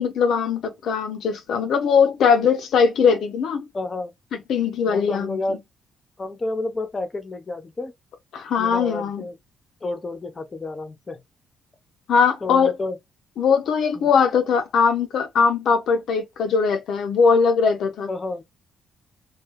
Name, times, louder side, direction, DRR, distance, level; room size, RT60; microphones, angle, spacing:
voice 1, 0.0-3.6 4.5-5.4 8.3-9.2 12.1-12.7 13.4-18.1, left 6 dB, 70° left, 0.5 m, -20 dB
voice 2, 3.7-4.1 4.8-5.6 6.2-7.9 8.6-9.4 9.8-11.2 12.4-13.0 13.9-14.1 18.1-18.4, left 2 dB, 30° left, 0.7 m, -30 dB
2.3 x 2.2 x 2.9 m
cardioid pair, 90°, 0 cm